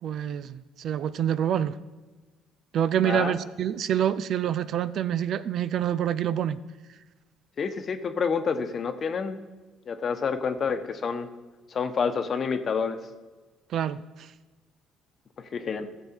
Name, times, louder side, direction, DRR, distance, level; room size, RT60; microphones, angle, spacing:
voice 1, 0.0-1.8 2.7-6.6 13.7-14.0, right 9 dB, 60° right, 14 dB, 0.4 m, -26 dB
voice 2, 3.0-3.4 7.6-9.4 9.9-11.3 11.7-13.0 15.4-15.9, left 5 dB, 45° left, 9 dB, 1.0 m, -28 dB
15.0 x 7.3 x 4.5 m, 1.2 s
supercardioid pair, 65°, 0 cm